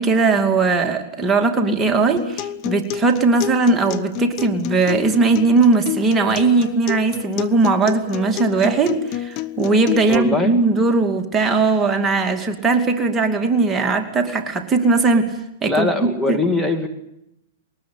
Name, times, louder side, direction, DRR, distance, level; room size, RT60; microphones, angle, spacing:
voice 1, 0.0-15.3 15.6-16.4, right 3 dB, 15° right, 4 dB, 2.6 m, -19 dB
Acoustic guitar, 2.2-10.2, left 13 dB, 40° left, 1.1 m, -29 dB
voice 2, 10.1-10.5 15.7-16.9, left 2 dB, ahead, 3 dB, 2.4 m, -21 dB
22.0 x 19.0 x 8.7 m, 0.82 s
hypercardioid pair, 115°, 0 cm